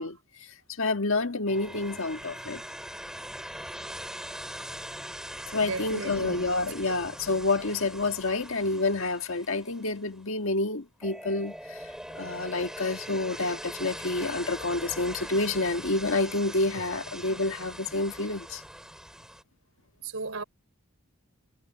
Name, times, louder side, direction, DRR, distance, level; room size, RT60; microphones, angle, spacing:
voice 1, 0.0-2.6 5.5-18.6, left 2 dB, 65° left, 1.6 m, -29 dB
sound 1, 1.5-10.3 11.0-19.4, equal, 5° right, 2.9 m, -42 dB
voice 2, 5.6-6.5 20.0-20.4, right 3 dB, 70° right, 4.1 m, -35 dB
head